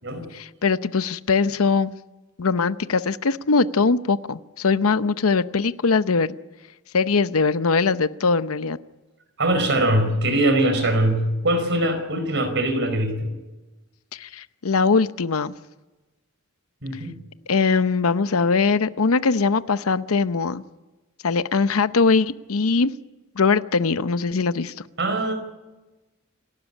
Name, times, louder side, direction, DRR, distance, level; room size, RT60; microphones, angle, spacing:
voice 1, 0.3-1.9 2.4-6.3 6.9-8.8 14.1-15.5 17.5-20.6 21.2-22.9 23.4-24.7, left 4 dB, 85° left, 14 dB, 0.8 m, -21 dB
voice 2, 9.4-13.3 16.8-17.1 25.0-25.3, right 1 dB, 60° right, 7 dB, 4.7 m, -22 dB
28.0 x 12.5 x 9.9 m, 1.1 s
head